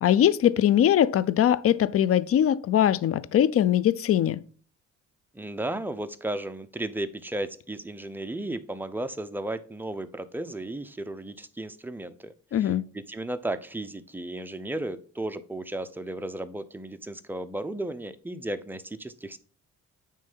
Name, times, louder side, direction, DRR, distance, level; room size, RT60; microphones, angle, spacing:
voice 1, 0.0-4.4 12.5-12.8, left 10 dB, 50° left, 0.5 m, -21 dB
voice 2, 5.3-12.7 13.1-19.4, right 1 dB, 5° right, 0.6 m, -34 dB
9.0 x 3.3 x 5.4 m
cardioid pair, 90°, 30 cm